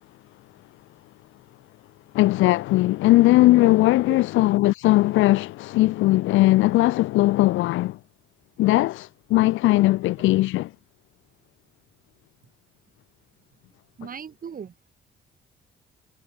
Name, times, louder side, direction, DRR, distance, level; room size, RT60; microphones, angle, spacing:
voice 1, 2.1-8.0 8.6-10.7, left 17 dB, 85° left, 0.5 m, -19 dB
voice 2, 14.0-14.9, right 7 dB, 45° right, 2.3 m, -38 dB
cardioid pair, 90°, 20 cm